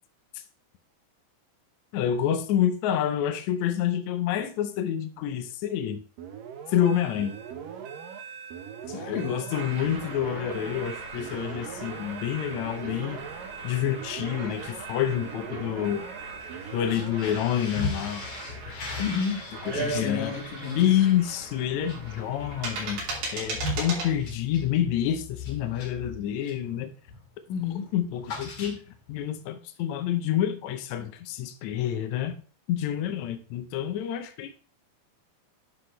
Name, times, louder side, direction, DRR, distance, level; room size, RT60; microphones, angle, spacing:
voice 1, 1.9-6.0 6.7-7.4 9.1-13.3 13.6-16.0 16.7-18.3 18.7-18.8 19.7-20.4 20.8-23.0 23.3-26.9 27.9-28.8 29.1-32.3 32.7-34.5, left 10 dB, 85° left, 1.6 m, -28 dB
sound 1, 6.2-18.3, right 7 dB, 70° right, 2.5 m, -41 dB
voice 2, 8.9-9.5 19.0-19.5 19.7-20.9 27.5-27.9, left 6 dB, 65° left, 2.8 m, -31 dB
sound 2, 9.5-24.1, right 3 dB, 85° right, 5.1 m, -39 dB
sound 3, 16.8-26.7 27.1-27.3 27.6-29.2, left 3 dB, 45° left, 2.6 m, -39 dB
10.5 x 6.0 x 3.2 m
omnidirectional pair, 4.4 m